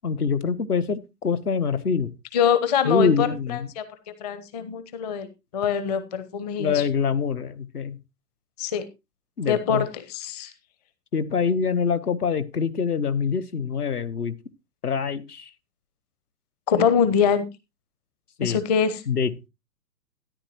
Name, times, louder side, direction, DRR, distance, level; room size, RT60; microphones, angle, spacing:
voice 1, 0.0-2.1 2.8-3.7 6.6-8.0 9.4-9.8 11.1-14.3 14.8-15.5 18.4-18.6 19.1-19.5, left 6 dB, 65° left, 14 dB, 1.2 m, -25 dB
voice 2, 2.3-3.8 4.2-5.3 5.5-6.8 8.6-8.8 9.5-10.5 16.7-17.4 18.4-19.0, left 7 dB, 25° left, 12 dB, 0.9 m, -24 dB
13.0 x 10.5 x 3.0 m, 0.25 s
figure-of-eight pair, 125°, 49 cm